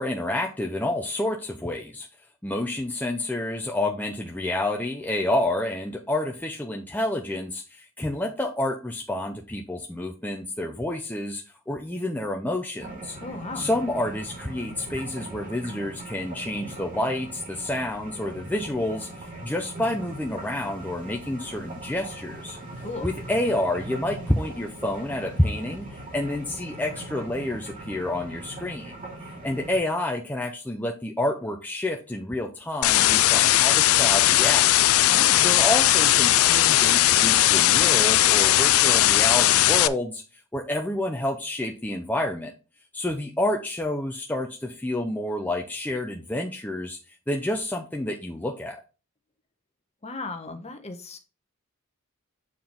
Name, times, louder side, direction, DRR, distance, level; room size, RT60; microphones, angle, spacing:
voice 1, 0.0-2.1 2.4-13.2 13.5-22.6 23.0-29.0 29.2-35.0 35.4-42.5 42.9-47.0 47.3-48.8, left 1 dB, 10° left, 1 dB, 0.6 m, -29 dB
sound 1, 12.8-29.8, right 1 dB, 40° right, 2.7 m, -40 dB
voice 2, 13.2-13.7 22.8-23.1 35.1-35.5 50.0-51.2, left 3 dB, 30° left, 7 dB, 1.1 m, -36 dB
sound 2, 32.8-39.9, left 14 dB, 65° left, 0.4 m, -18 dB
7.6 x 4.6 x 3.6 m, 0.32 s
head